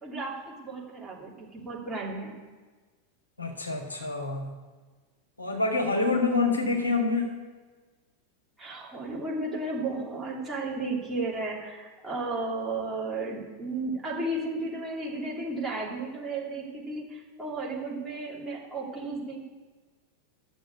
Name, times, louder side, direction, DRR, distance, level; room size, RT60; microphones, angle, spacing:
voice 1, 0.0-2.4 8.6-19.4, right 2 dB, 10° right, -5 dB, 3.1 m, -34 dB
voice 2, 3.4-4.5 5.4-7.4, left 3 dB, 80° left, 1 dB, 1.6 m, -26 dB
9.0 x 6.9 x 8.4 m, 1.4 s
figure-of-eight pair, 90°, 0 cm